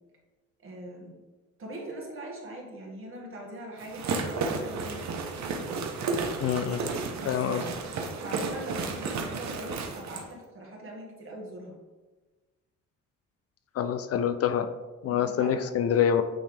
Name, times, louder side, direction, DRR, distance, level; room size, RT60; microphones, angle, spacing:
voice 1, 0.6-1.1 1.6-5.1 7.1-7.7 8.2-11.8 15.1-15.6, right 1 dB, 45° right, -2 dB, 1.9 m, -41 dB
sound 1, 3.8-10.3, right 4 dB, 65° right, 0.9 m, -32 dB
voice 2, 6.4-6.9 7.3-7.6 13.8-14.7 15.0-16.2, left 8 dB, 55° left, 9 dB, 0.5 m, -26 dB
8.8 x 3.3 x 3.3 m, 1.2 s
cardioid pair, 90°, 30 cm